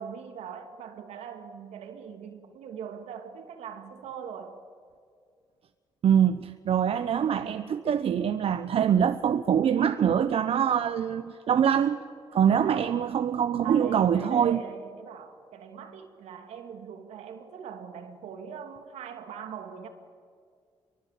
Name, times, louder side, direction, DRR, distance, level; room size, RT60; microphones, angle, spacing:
voice 1, 0.0-4.6 12.5-13.1 13.6-19.9, right 7 dB, 80° right, 2.7 m, -41 dB
voice 2, 6.0-12.0 12.3-14.6, right 8 dB, 60° right, 1.0 m, -24 dB
25.5 x 23.5 x 8.6 m
supercardioid pair, 60°, 11 cm